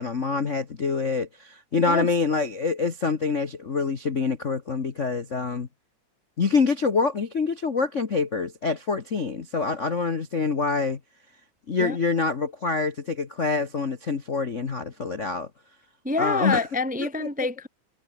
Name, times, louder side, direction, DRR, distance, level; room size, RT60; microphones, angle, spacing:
voice 1, 0.0-5.7 6.4-11.0 11.7-15.5 16.2-16.7 17.0-17.3, left 4 dB, 85° left, 0.6 m, -26 dB
voice 2, 16.0-17.7, left 3 dB, 10° right, 0.5 m, -26 dB
omnidirectional pair, 3.7 m